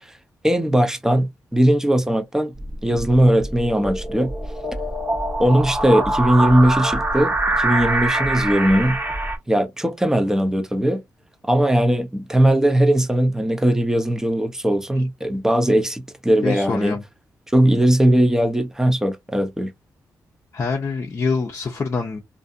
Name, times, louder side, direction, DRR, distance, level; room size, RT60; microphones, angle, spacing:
voice 1, 0.4-2.5 2.8-4.3 5.4-9.0 9.5-11.0 11.4-17.0 17.5-19.7, right 1 dB, 5° right, 0.5 m, -19 dB
sound 1, 2.6-9.4, right 2 dB, 30° right, 0.9 m, -24 dB
voice 2, 16.4-17.0 20.5-22.2, left 4 dB, 45° left, 0.5 m, -25 dB
2.5 x 2.5 x 2.5 m
cardioid pair, 90°, 7 cm